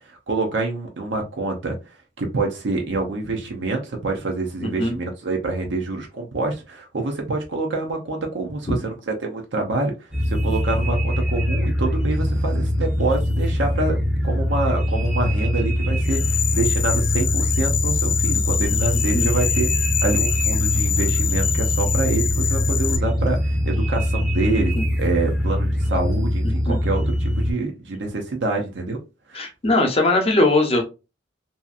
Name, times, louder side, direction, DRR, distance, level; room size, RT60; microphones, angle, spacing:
voice 1, 0.1-1.8 2.2-9.9 10.3-24.7 25.0-29.0 29.3-29.5, right 3 dB, 80° right, 0.6 m, -26 dB
voice 2, 4.6-5.0 19.1-19.3 24.7-24.8 26.4-26.8 29.3-30.9, left 2 dB, 35° left, 0.7 m, -20 dB
sound 1, 10.1-27.5, left 1 dB, ahead, 0.6 m, -22 dB
sound 2, 16.0-23.0, left 10 dB, 90° left, 0.4 m, -25 dB
2.7 x 2.5 x 2.4 m
head